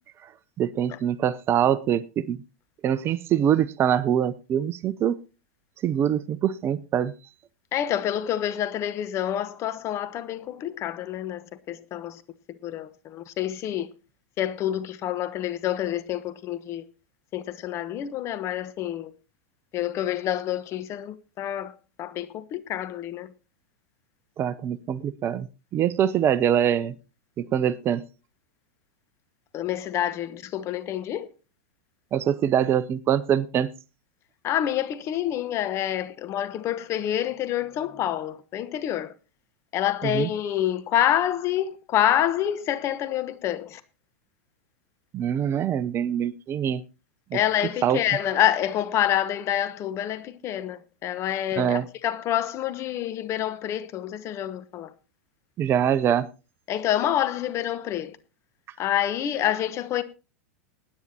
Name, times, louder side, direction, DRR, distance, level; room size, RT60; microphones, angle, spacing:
voice 1, 0.6-2.4 2.8-5.2 5.8-7.1 24.4-25.5 25.7-26.9 27.4-28.0 32.1-33.7 40.0-40.3 45.1-46.8 47.3-47.4 47.8-48.0 51.6-51.9 55.6-56.3, right 9 dB, 30° right, 0.6 m, -24 dB
voice 2, 7.7-12.2 12.6-13.9 14.4-16.8 17.3-19.1 19.7-23.3 29.5-31.3 34.4-39.1 39.7-43.8 47.3-54.9 56.7-58.2 58.8-60.0, left 11 dB, 40° left, 1.1 m, -27 dB
21.0 x 9.6 x 2.8 m
hypercardioid pair, 110°, 8 cm